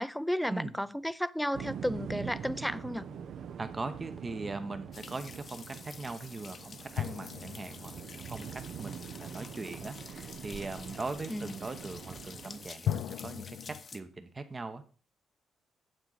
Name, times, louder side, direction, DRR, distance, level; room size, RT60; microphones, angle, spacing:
voice 1, 0.0-3.1 11.3-11.5, equal, ahead, 0.4 m, -33 dB
sound 1, 1.5-12.7, right 7 dB, 65° right, 0.6 m, -44 dB
sound 2, 2.8-4.1 6.9-9.5 12.9-13.8, left 10 dB, 75° left, 0.4 m, -39 dB
voice 2, 3.6-13.6 13.9-14.8, right 3 dB, 30° right, 0.8 m, -40 dB
sound 3, 4.9-14.0, left 5 dB, 40° left, 0.7 m, -49 dB
8.9 x 7.4 x 4.0 m
cardioid pair, 90°, 0 cm